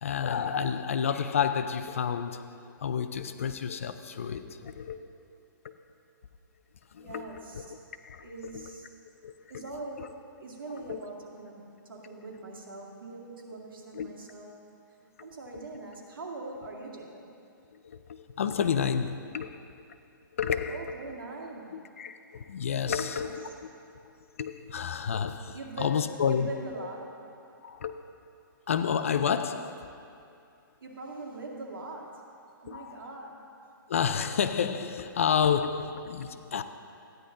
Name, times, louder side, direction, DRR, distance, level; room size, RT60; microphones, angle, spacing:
voice 1, 0.0-2.5 2.8-5.0 5.6-5.7 6.9-7.7 8.0-8.3 8.5-8.6 9.2-9.3 10.0-10.1 10.9-11.0 13.9-14.1 17.7-19.6 20.3-20.8 21.7-26.5 27.6-28.0 28.7-29.9 32.7-32.9 33.9-36.6, left 7 dB, 40° left, 10 dB, 0.4 m, -30 dB
voice 2, 7.0-7.8 8.2-8.9 9.5-14.6 15.0-17.3 20.7-21.7 22.9-23.5 25.5-27.1 30.8-32.2 32.6-33.4, right 2 dB, 80° right, -1 dB, 2.2 m, -42 dB
14.0 x 10.0 x 3.8 m, 2.5 s
hypercardioid pair, 175°, 11 cm